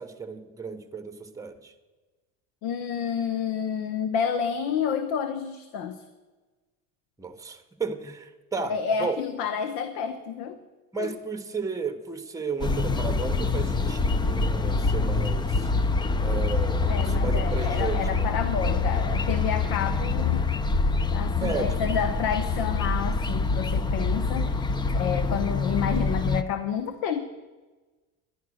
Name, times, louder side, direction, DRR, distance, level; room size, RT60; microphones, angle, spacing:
voice 1, 0.0-1.7 7.2-8.7 9.0-9.2 10.9-15.7 16.2-18.3 21.4-21.8, right 5 dB, 10° right, 7 dB, 1.1 m, -34 dB
voice 2, 2.6-6.0 8.7-10.6 11.0-11.1 14.9-15.2 16.9-20.5 21.1-27.2, left 7 dB, 75° left, 10 dB, 1.0 m, -30 dB
sound 1, 12.6-26.4, left 3 dB, 15° left, 0.4 m, -25 dB
11.0 x 10.5 x 6.3 m, 1.2 s
cardioid pair, 130°, 35 cm